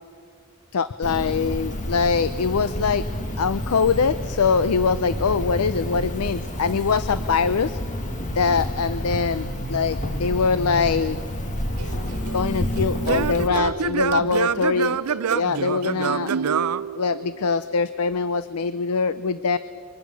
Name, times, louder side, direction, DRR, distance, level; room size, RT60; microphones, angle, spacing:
voice 1, 0.7-3.0 3.4-7.8 8.3-11.2 12.3-15.0 15.3-16.3 16.9-19.6, left 5 dB, 80° left, 14 dB, 0.5 m, -23 dB
Cricket, 1.0-13.5, left 1 dB, 35° left, 1.9 m, -29 dB
Singing / Plucked string instrument, 11.8-17.6, right 6 dB, 80° right, 0.5 m, -27 dB
29.5 x 23.5 x 6.2 m, 2.5 s
head